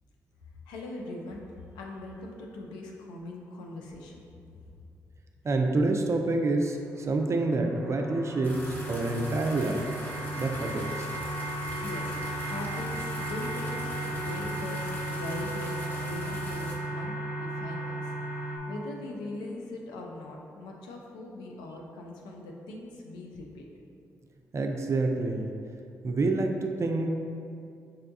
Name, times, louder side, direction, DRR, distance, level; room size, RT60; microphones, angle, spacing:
voice 1, 0.7-1.4 1.7-4.7 11.8-18.1 18.7-23.7, left 2 dB, 85° left, 0 dB, 0.4 m, -41 dB
voice 2, 5.4-9.8 10.4-11.1 24.5-25.5 26.0-27.1, right 2 dB, 40° right, 4 dB, 0.4 m, -27 dB
sound 1, 6.5-18.6, right 1 dB, 25° right, 0.8 m, -35 dB
sound 2, 8.4-16.8, equal, 25° left, 0.9 m, -42 dB
5.5 x 2.2 x 2.6 m, 2.6 s
hypercardioid pair, 45°, 7 cm